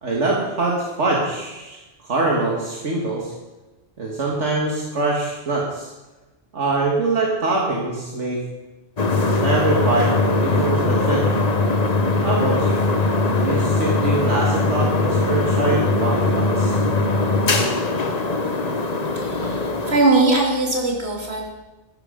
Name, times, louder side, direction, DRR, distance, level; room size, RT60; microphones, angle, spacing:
voice 1, 0.0-1.8 2.0-3.3 4.0-5.9 6.5-8.4 9.4-11.5 12.2-12.8 13.4-16.8, right 3 dB, 80° right, -2 dB, 2.1 m, -23 dB
sound 1, 9.0-20.0, left 3 dB, 35° left, 1.1 m, -20 dB
voice 2, 19.1-21.5, right 2 dB, 60° right, -2 dB, 3.2 m, -20 dB
13.5 x 12.0 x 5.1 m, 1.1 s
omnidirectional pair, 1.2 m